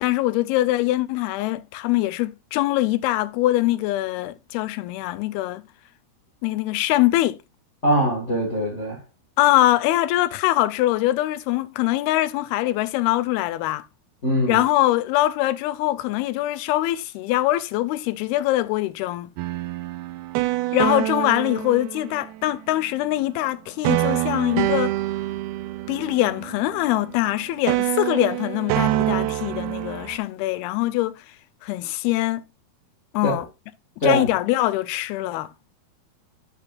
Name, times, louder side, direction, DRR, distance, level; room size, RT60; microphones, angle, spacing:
voice 1, 0.0-5.6 6.4-7.4 9.4-13.8 14.5-19.3 20.7-24.9 25.9-31.2 31.6-32.4 33.1-33.5 34.0-35.5, left 16 dB, 85° left, 2.6 m, -23 dB
voice 2, 7.8-9.0 14.2-14.6 33.2-33.3 34.0-34.3, equal, 50° left, 0.8 m, -22 dB
sound 1, 19.4-22.5 23.8-27.3 27.7-30.2, right 17 dB, 90° right, 2.6 m, -26 dB
10.5 x 7.2 x 2.4 m
omnidirectional pair, 4.4 m